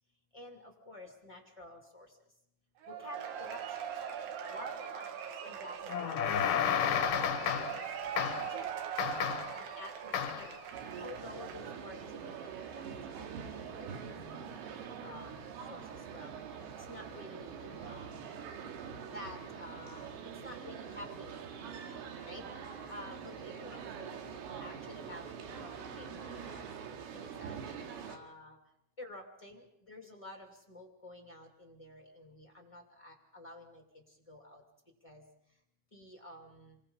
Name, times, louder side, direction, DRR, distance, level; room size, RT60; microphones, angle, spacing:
voice 1, 0.3-2.2 2.9-3.9 4.5-6.3 6.5-7.8 8.3-8.7 9.5-10.5 11.0-14.6 15.0-16.4 16.9-18.2 19.1-20.1 20.4-21.4 22.2-22.4 22.9-26.7 27.1-28.6 29.0-34.6 35.0-35.2 35.9-36.8, left 1 dB, 50° left, 2 dB, 0.4 m, -50 dB
Cheering / Applause / Crowd, 2.8-11.7, right 8 dB, 70° right, 4.1 m, -41 dB
sound 1, 5.9-7.9 8.2-8.6 9.0-9.6 10.1-10.5, left 8 dB, 70° left, 2.0 m, -32 dB
sound 2, 10.7-28.2, right 7 dB, 85° right, 4.5 m, -44 dB
27.5 x 23.5 x 5.6 m, 0.76 s
omnidirectional pair, 5.8 m